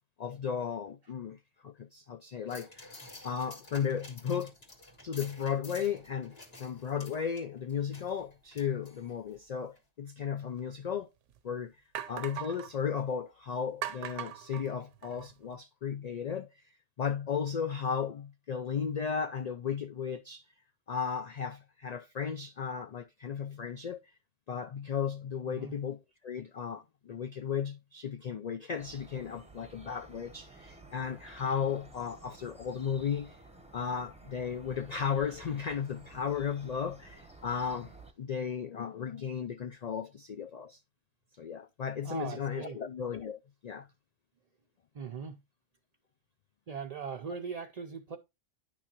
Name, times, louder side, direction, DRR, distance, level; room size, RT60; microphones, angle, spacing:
voice 1, 0.2-1.4 1.6-3.0 3.2-4.5 5.0-11.1 11.4-11.7 12.1-16.6 17.0-20.4 20.9-24.0 24.5-33.4 33.7-37.9 38.2-40.8 41.4-43.9, left 7 dB, 75° left, 0.3 m, -35 dB
sound 1, 2.5-9.4 9.8-9.9, left 2 dB, 55° left, 2.3 m, -52 dB
sound 2, 10.6-10.7 11.3-11.4 11.9-12.7 13.8-15.3, right 11 dB, 80° right, 1.0 m, -40 dB
voice 2, 25.5-25.8 42.0-42.8 44.9-45.4 46.7-48.2, right 6 dB, 45° right, 0.5 m, -40 dB
sound 3, 28.8-38.1, right 2 dB, 5° right, 0.8 m, -53 dB
9.9 x 6.1 x 2.9 m
omnidirectional pair, 1.3 m